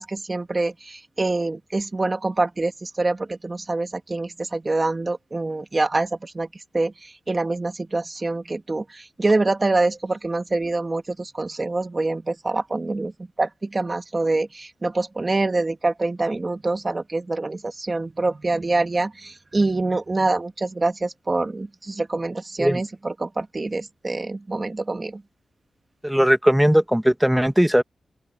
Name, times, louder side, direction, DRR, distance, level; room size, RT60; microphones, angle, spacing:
voice 1, 0.0-6.5 6.7-13.1 13.4-25.2, right 2 dB, 25° right, 1.8 m, -25 dB
voice 2, 26.0-27.8, equal, 5° right, 1.3 m, -18 dB
open air
wide cardioid pair, 155°, 0 cm